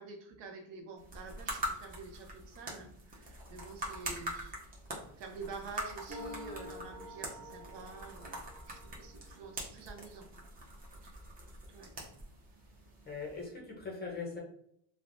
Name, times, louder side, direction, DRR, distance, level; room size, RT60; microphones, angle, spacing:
voice 1, 0.0-4.6 5.2-10.3 11.0-11.2 11.7-11.9, right 4 dB, 65° right, 4 dB, 0.7 m, -48 dB
sound 1, 1.0-13.5, right 1 dB, 20° right, 0.6 m, -44 dB
sound 2, 6.1-9.5, left 1 dB, 40° right, 0.9 m, -48 dB
voice 2, 13.1-14.4, left 4 dB, 20° left, -1 dB, 0.6 m, -41 dB
3.2 x 2.0 x 2.5 m, 0.70 s
cardioid pair, 150°, 47 cm